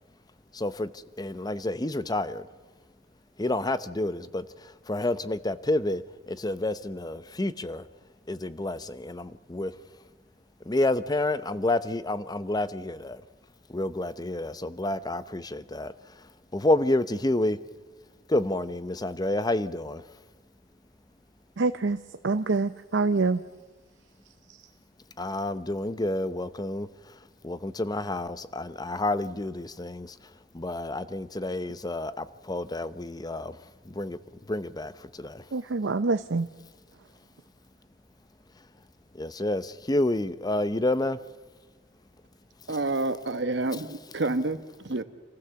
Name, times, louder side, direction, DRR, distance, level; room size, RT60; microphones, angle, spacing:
voice 1, 0.5-2.5 3.4-7.9 8.3-9.7 10.7-13.2 13.7-15.9 16.5-17.6 18.3-20.0 25.2-26.9 27.4-30.1 30.5-33.6 33.8-34.2 34.5-35.4 39.1-41.2, left 1 dB, 20° left, 0.8 m, -29 dB
voice 2, 21.6-23.4 24.5-24.6 35.5-36.5, right 3 dB, 85° right, 0.7 m, -26 dB
voice 3, 42.7-45.0, right 2 dB, 70° right, 1.2 m, -29 dB
27.5 x 15.5 x 7.0 m
head